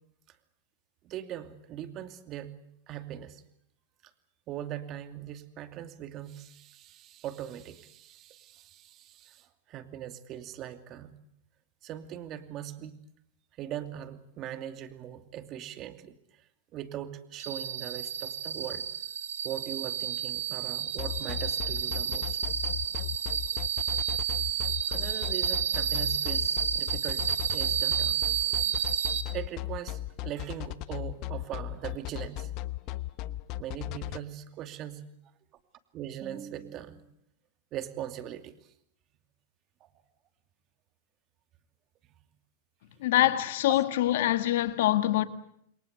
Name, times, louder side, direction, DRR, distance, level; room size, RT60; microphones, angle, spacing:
voice 1, 1.0-2.5 2.9-3.4 4.5-11.2 11.8-13.0 13.6-16.5 16.7-18.9 19.4-22.4 24.9-29.0 29.3-32.5 33.6-35.1 35.9-37.1 37.7-38.7 39.8-39.9 42.0-42.2 42.9-43.0, right 11 dB, 40° right, 2.6 m, -40 dB
sound 1, 17.4-29.2, right 8 dB, 85° right, 2.9 m, -31 dB
sound 2, 21.0-34.2, left 15 dB, 50° left, 1.1 m, -36 dB
voice 2, 43.0-45.3, left 14 dB, 70° left, 1.9 m, -24 dB
28.5 x 22.5 x 8.2 m
hypercardioid pair, 115°, 0 cm